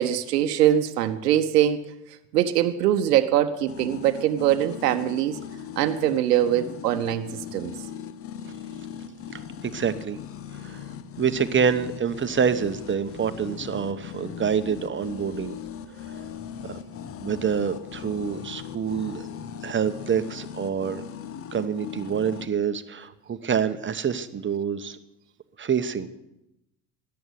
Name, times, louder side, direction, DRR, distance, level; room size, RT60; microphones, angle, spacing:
voice 1, 0.0-1.8 2.1-5.4 5.8-7.7 13.4-13.5, right 11 dB, 80° right, 8 dB, 0.9 m, -23 dB
sound 1, 3.7-22.5, left 8 dB, 30° left, 0.8 m, -39 dB
voice 2, 9.3-10.2 10.5-10.9 11.2-15.6 16.6-16.8 17.2-19.3 19.6-21.0 21.5-25.0 25.6-26.1, right 7 dB, 25° right, 11 dB, 1.1 m, -27 dB
14.0 x 10.5 x 8.1 m, 0.90 s
hypercardioid pair, 75°, 47 cm